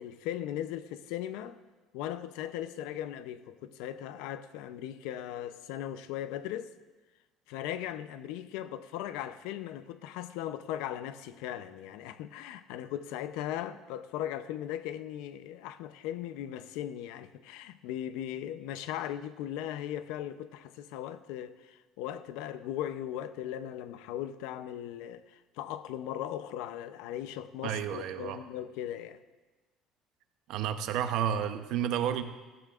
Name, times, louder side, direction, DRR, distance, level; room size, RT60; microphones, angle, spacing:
voice 1, 0.0-1.6 1.9-6.7 7.5-29.2, left 11 dB, 85° left, 0.6 m, -38 dB
voice 2, 27.6-28.4 30.5-32.2, right 9 dB, 65° right, 0.8 m, -31 dB
15.0 x 15.0 x 2.5 m
cardioid pair, 160°, 0 cm